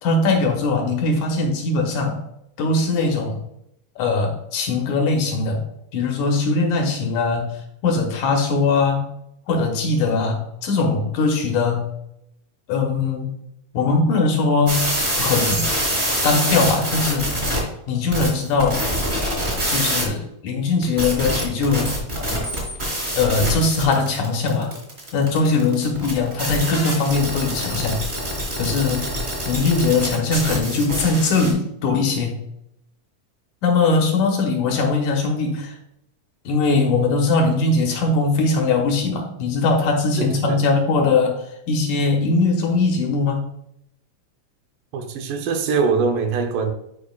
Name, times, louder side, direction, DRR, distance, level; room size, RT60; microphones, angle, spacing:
voice 1, 0.0-2.2 2.6-3.4 4.0-5.6 5.9-9.1 9.5-11.9 12.7-13.4 13.7-15.7 16.2-17.3 17.9-18.8 19.7-22.0 23.1-24.7 25.1-28.0 28.6-29.1 29.5-32.4 33.6-35.8 36.5-43.5, left 3 dB, 70° left, 2.3 m, -20 dB
sound 1, 14.7-17.6 18.1-20.0 20.8-31.5, equal, 20° right, 1.6 m, -25 dB
voice 2, 40.2-40.6 44.9-46.7, right 5 dB, 80° right, 2.4 m, -22 dB
10.5 x 4.9 x 2.3 m
omnidirectional pair, 3.8 m